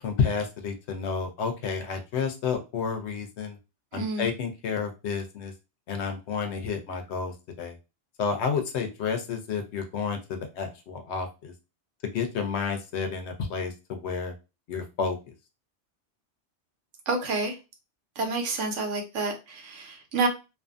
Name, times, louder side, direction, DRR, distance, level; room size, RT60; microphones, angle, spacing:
voice 1, 0.0-3.6 3.9-5.5 5.9-7.8 8.2-11.5 12.1-14.3 14.7-15.2, left 5 dB, 70° left, 0.9 m, -30 dB
voice 2, 3.9-4.3 17.1-17.5 18.2-20.3, right 3 dB, 85° right, 1.1 m, -29 dB
2.6 x 2.5 x 2.4 m
omnidirectional pair, 1.2 m